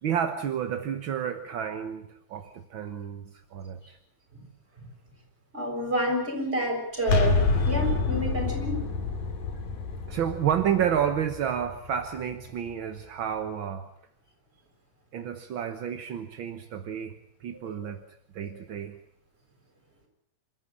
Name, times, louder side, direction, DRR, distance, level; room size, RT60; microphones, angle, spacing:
voice 1, 0.0-3.2 3.5-4.0 10.1-13.9 15.1-18.0 18.3-19.0, right 9 dB, 55° right, 7 dB, 1.6 m, -30 dB
voice 2, 5.5-8.9 17.5-18.0, equal, 20° right, 2 dB, 7.2 m, -29 dB
sound 1, 7.0-12.7, left 3 dB, 85° left, 4.2 m, -28 dB
27.0 x 14.5 x 9.9 m, 0.69 s
omnidirectional pair, 3.4 m